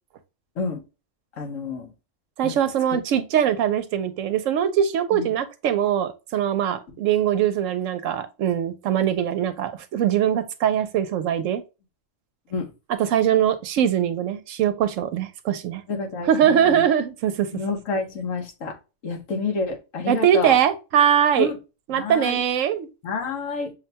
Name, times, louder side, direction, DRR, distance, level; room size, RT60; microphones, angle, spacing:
voice 1, 1.4-1.9 2.4-2.6 5.1-5.3 12.5-12.7 15.9-16.9 17.5-18.8 19.0-20.6 21.4-21.6 21.9-22.4 23.0-23.7, left 4 dB, 85° left, 1.4 m, -29 dB
voice 2, 2.4-11.6 13.0-15.8 16.3-17.5 20.1-21.5 21.9-22.9, right 9 dB, 80° right, 1.0 m, -22 dB
6.4 x 2.2 x 2.7 m
omnidirectional pair, 1.3 m